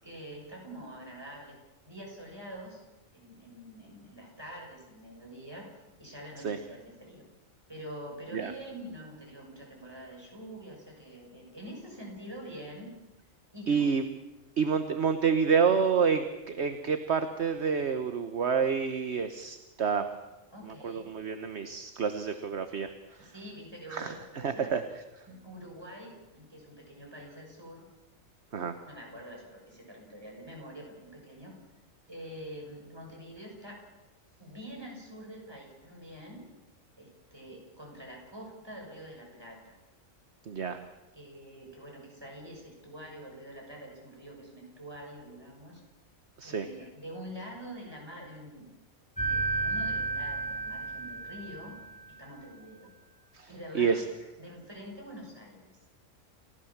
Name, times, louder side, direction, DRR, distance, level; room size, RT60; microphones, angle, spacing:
voice 1, 0.0-1.6 1.8-2.8 3.1-5.7 6.0-7.3 7.7-12.9 13.5-13.9 20.5-21.1 23.2-24.8 25.3-27.9 28.9-31.6 32.1-33.8 34.4-36.4 37.0-39.8 41.1-45.8 46.4-48.7 49.3-51.8 52.2-52.9 53.5-55.9, equal, 20° right, 0 dB, 6.7 m, -45 dB
voice 2, 13.7-14.0 14.6-20.1 20.8-23.3 23.9-24.1 24.4-24.8 28.5-28.8 40.5-40.8 46.4-46.7 53.3-54.0, right 6 dB, 55° right, 8 dB, 1.4 m, -28 dB
sound 1, 49.2-52.0, right 3 dB, 5° left, 3.1 m, -32 dB
29.5 x 15.5 x 7.3 m, 1.0 s
omnidirectional pair, 1.4 m